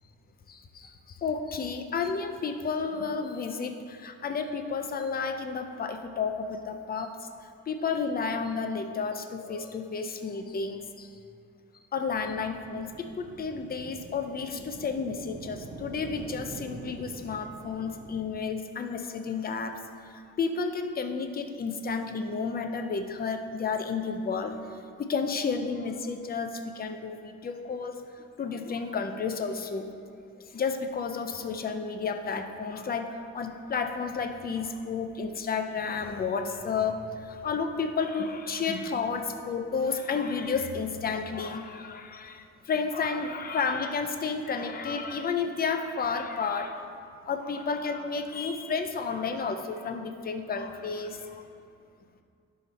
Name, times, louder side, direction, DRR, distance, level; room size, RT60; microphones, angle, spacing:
voice 1, 0.5-7.3 7.7-11.1 11.9-19.7 20.0-24.6 25.0-29.9 30.5-46.8 47.3-51.4, left 5 dB, 25° left, 6 dB, 0.5 m, -32 dB
sound 1, 12.1-18.3, right 3 dB, 25° right, 0.5 m, -45 dB
10.5 x 5.8 x 4.1 m, 2.4 s
cardioid pair, 155°, 34 cm